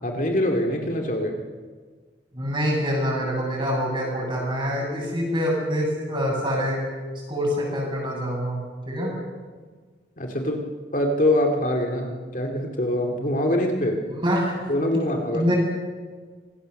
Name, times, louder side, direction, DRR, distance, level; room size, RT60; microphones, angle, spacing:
voice 1, 0.0-1.4 10.2-10.6 10.9-14.0 14.7-15.5, left 1 dB, 45° left, 2 dB, 2.6 m, -24 dB
voice 2, 2.3-6.8 7.3-8.6 8.9-9.1 14.1-14.5 15.3-15.6, equal, 25° right, -1 dB, 7.6 m, -25 dB
26.0 x 19.0 x 6.7 m, 1.5 s
head